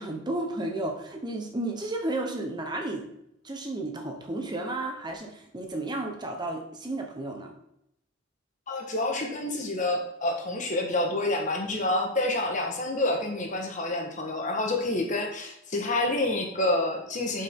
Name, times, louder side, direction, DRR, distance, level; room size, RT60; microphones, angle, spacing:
voice 1, 0.0-3.1 3.4-7.5, right 2 dB, 20° right, 2 dB, 0.9 m, -33 dB
voice 2, 8.7-17.4, left 2 dB, 40° left, 2 dB, 1.3 m, -28 dB
8.3 x 5.5 x 3.7 m, 0.76 s
head